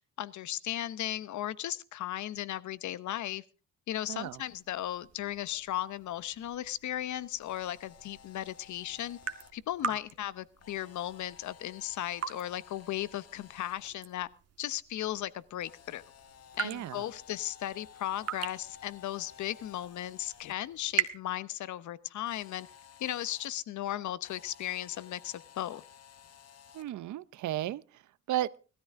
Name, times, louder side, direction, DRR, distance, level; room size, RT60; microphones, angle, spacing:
voice 1, 0.2-3.4 3.9-9.2 9.5-14.3 14.6-16.0 16.6-22.7 23.0-25.8, left 13 dB, 70° left, 0.9 m, -36 dB
sound 1, 4.1-21.2, right 8 dB, 55° right, 1.8 m, -42 dB
Camera, 7.3-9.5 10.6-13.9 15.6-20.5 22.2-23.5 24.2-26.9, left 8 dB, 55° left, 1.6 m, -55 dB
voice 2, 16.6-17.0 26.7-27.8 28.3-28.5, right 13 dB, 75° right, 0.8 m, -34 dB
19.0 x 13.5 x 3.6 m
cardioid pair, 90°, 30 cm